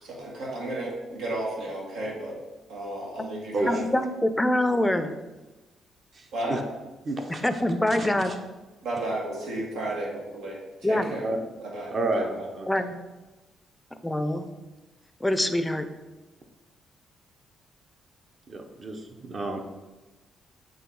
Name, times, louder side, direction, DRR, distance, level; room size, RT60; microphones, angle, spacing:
voice 1, 0.0-2.4 2.7-3.8 6.3-6.6 8.8-11.3 11.6-12.5, right 1 dB, 85° right, -3 dB, 2.0 m, -33 dB
voice 2, 3.7-5.1 7.4-8.3 10.8-11.1 12.7-13.0 14.0-14.5 15.2-15.9, left 1 dB, 10° left, 9 dB, 0.5 m, -25 dB
voice 3, 6.1-6.6 7.0-7.4 8.0-8.4 11.0-11.4 11.9-12.7 18.5-19.6, right 2 dB, 40° right, 4 dB, 0.9 m, -31 dB
8.0 x 3.2 x 4.7 m, 1.1 s
cardioid pair, 90°, 0 cm